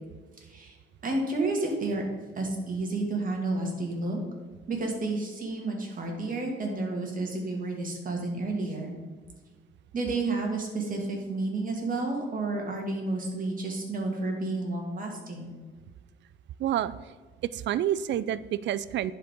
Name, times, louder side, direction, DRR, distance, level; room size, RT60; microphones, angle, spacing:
voice 1, 0.4-0.8 1.0-2.1 2.4-4.2 4.7-8.9 9.9-15.5, right 2 dB, 45° right, 1 dB, 2.3 m, -31 dB
voice 2, 16.6-16.9 17.5-19.1, right 11 dB, 65° right, 17 dB, 0.4 m, -28 dB
11.0 x 5.0 x 3.8 m, 1.4 s
cardioid pair, 90°, 20 cm